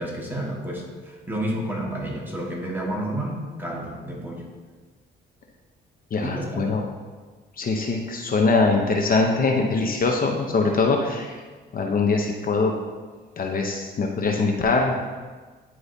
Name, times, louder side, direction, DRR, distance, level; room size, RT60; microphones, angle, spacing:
voice 1, 0.0-4.4 6.2-6.7, right 1 dB, 10° right, -2 dB, 1.6 m, -30 dB
voice 2, 6.1-6.8 7.6-11.3 11.7-12.7 13.4-14.9, left 3 dB, 45° left, 1 dB, 0.8 m, -22 dB
9.9 x 4.7 x 2.7 m, 1.4 s
cardioid pair, 90°, 20 cm